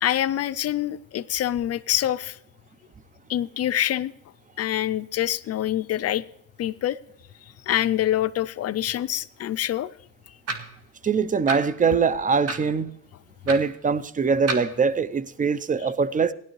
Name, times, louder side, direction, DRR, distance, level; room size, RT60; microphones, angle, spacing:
voice 1, 0.0-2.4 3.3-4.1 4.6-6.2 6.6-7.0 7.7-9.9, left 12 dB, 55° left, 0.4 m, -25 dB
sound 1, 10.5-10.7 11.5-11.6 12.5-12.7 13.5-13.6 14.5-14.7, right 4 dB, 50° right, 1.9 m, -29 dB
voice 2, 11.0-12.9 13.5-16.3, right 5 dB, 25° right, 0.6 m, -23 dB
16.5 x 11.0 x 3.1 m
cardioid pair, 90°, 30 cm